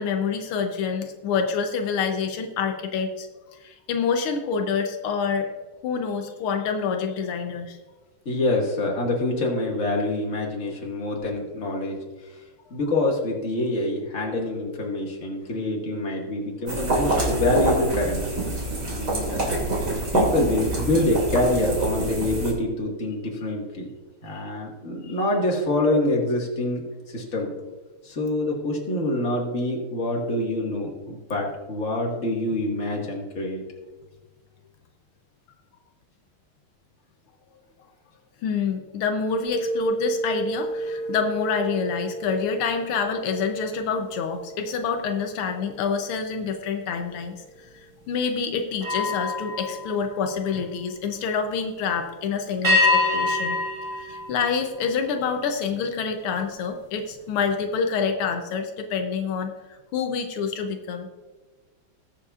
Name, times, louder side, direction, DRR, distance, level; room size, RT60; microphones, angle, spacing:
voice 1, 0.0-5.5 5.8-7.8 24.3-24.4 25.0-25.2 38.4-53.6 54.0-61.1, left 5 dB, 85° left, 5 dB, 1.7 m, -27 dB
voice 2, 8.3-12.0 12.7-18.5 18.8-19.4 20.1-23.9 24.2-27.5 28.0-33.6, left 2 dB, 35° left, -2 dB, 2.1 m, -26 dB
sound 1, 16.7-22.5, right 2 dB, 50° right, 3.1 m, -26 dB
sound 2, 39.4-45.0 45.5-45.8 48.7-50.9 52.6-55.2, left 2 dB, 10° right, 3.8 m, -28 dB
20.0 x 7.0 x 2.4 m, 1.3 s
omnidirectional pair, 2.3 m